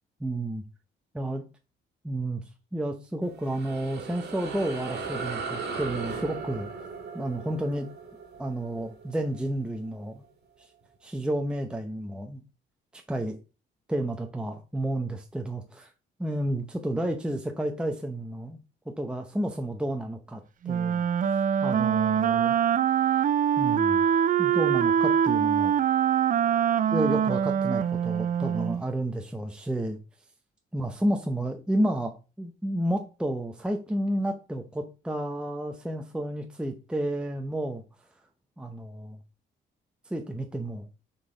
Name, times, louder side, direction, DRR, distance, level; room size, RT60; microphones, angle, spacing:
voice 1, 0.2-0.6 1.1-1.4 2.0-2.4 2.7-6.9 7.1-7.9 8.4-10.2 10.6-10.7 11.0-12.4 12.9-13.4 13.9-15.9 16.2-18.6 18.9-21.0 21.3-22.6 23.6-24.1 24.4-25.7 26.9-30.0 30.7-37.8 38.6-39.2 40.1-40.9, right 1 dB, 5° right, 0.7 m, -31 dB
sound 1, 3.2-10.0, right 4 dB, 60° right, 1.8 m, -37 dB
Wind instrument woodwind instrument, 20.6-28.8, right 9 dB, 45° right, 0.4 m, -24 dB
6.0 x 4.0 x 3.9 m
cardioid pair, 90°, 20 cm